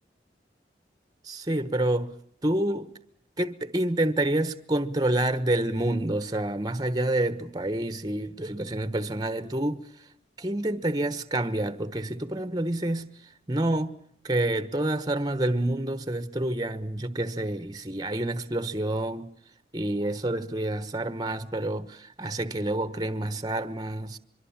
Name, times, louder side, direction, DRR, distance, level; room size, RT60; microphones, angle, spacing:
voice 1, 1.2-2.9 3.4-9.9 10.4-13.1 13.5-14.0 14.2-19.3 19.7-24.2, right 1 dB, 25° right, 1.2 m, -28 dB
24.0 x 23.5 x 7.3 m
head